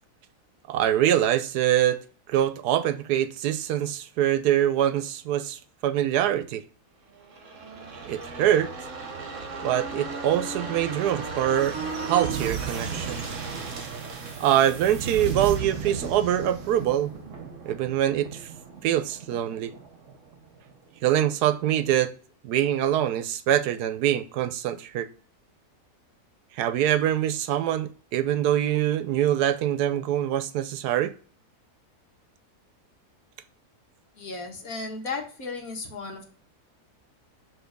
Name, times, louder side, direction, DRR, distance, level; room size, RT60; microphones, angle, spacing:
voice 1, 0.7-2.0 2.3-6.6 8.0-8.7 9.6-13.3 14.4-17.1 17.6-18.5 18.8-19.7 21.0-22.1 22.4-25.1 26.5-31.1, right 11 dB, 85° right, 1.2 m, -24 dB
sound 1, 7.2-20.7 21.0-21.1, right 5 dB, 55° right, 1.5 m, -35 dB
voice 2, 34.2-36.3, left 3 dB, 65° left, 1.9 m, -35 dB
7.1 x 3.8 x 5.3 m
omnidirectional pair, 1.7 m